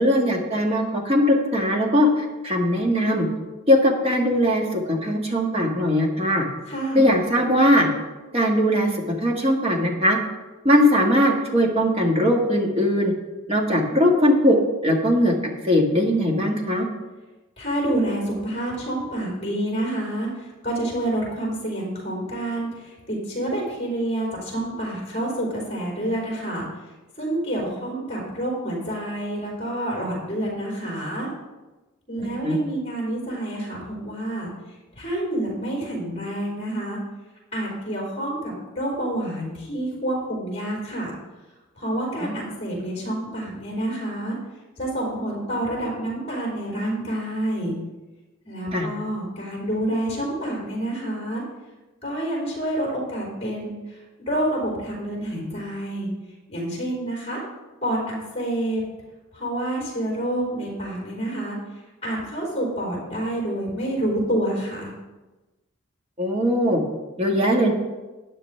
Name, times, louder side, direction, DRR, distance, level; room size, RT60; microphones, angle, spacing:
voice 1, 0.0-3.3 3.7-6.4 6.9-7.9 8.3-10.2 10.6-13.1 13.5-14.6 14.8-15.3 15.6-16.9 32.2-32.6 42.2-42.5 48.7-48.9 66.2-66.8 67.2-67.7, equal, 30° right, 1 dB, 1.5 m, -20 dB
voice 2, 6.7-7.2 17.6-26.7 27.2-31.3 32.1-34.5 34.9-37.0 37.5-41.1 41.8-44.4 44.8-47.7 48.4-51.4 52.0-56.1 56.5-57.4 57.8-58.8 59.3-61.6 62.0-64.9, right 1 dB, 30° left, -4 dB, 3.9 m, -28 dB
13.0 x 9.5 x 3.3 m, 1.1 s
head